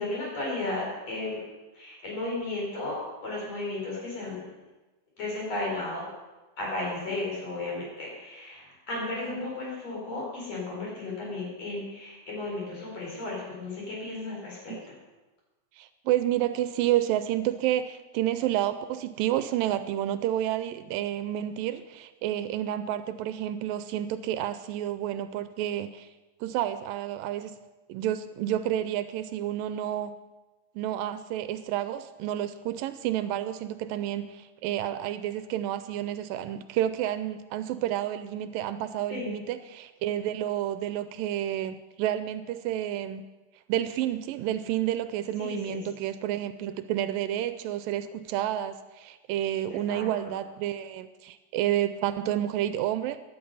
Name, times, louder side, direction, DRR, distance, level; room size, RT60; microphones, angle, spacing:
voice 1, 0.0-1.4 1.7-4.4 5.2-6.1 6.6-14.9 39.1-39.4 45.4-45.8 49.7-50.4, left 2 dB, 45° left, -3 dB, 5.6 m, -34 dB
voice 2, 15.8-26.1 26.4-27.6 27.9-30.1 30.8-43.2 43.7-53.2, right 12 dB, 80° right, 12 dB, 2.2 m, -30 dB
15.5 x 11.0 x 5.5 m, 1.1 s
omnidirectional pair, 4.1 m